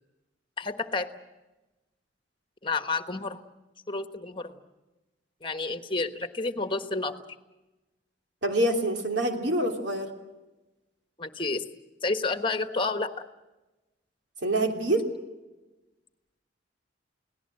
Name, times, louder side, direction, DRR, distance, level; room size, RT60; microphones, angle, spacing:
voice 1, 0.6-1.1 2.6-3.4 3.9-4.6 5.4-7.1 11.2-11.6 12.0-13.1, left 3 dB, 25° left, 8 dB, 1.3 m, -30 dB
voice 2, 8.4-10.1 14.4-15.0, right 1 dB, 80° right, 3 dB, 3.1 m, -26 dB
29.5 x 18.5 x 7.7 m, 1.1 s
head